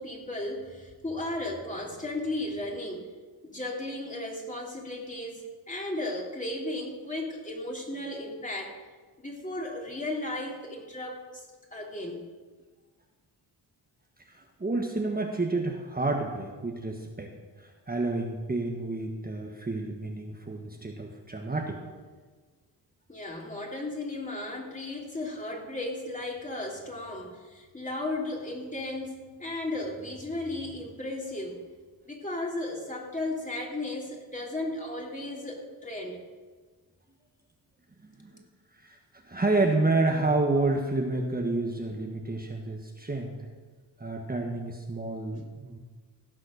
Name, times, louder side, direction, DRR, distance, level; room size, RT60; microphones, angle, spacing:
voice 1, 0.0-3.1 3.4-8.8 9.2-12.2 23.1-31.6 32.1-36.2, left 2 dB, 20° left, -1 dB, 3.0 m, -35 dB
voice 2, 14.3-17.3 17.6-21.8 38.2-38.3 38.8-39.0 39.2-43.4 44.0-45.8, right 2 dB, 20° right, 1 dB, 1.4 m, -29 dB
16.0 x 6.4 x 6.5 m, 1.4 s
cardioid pair, 70°, 41 cm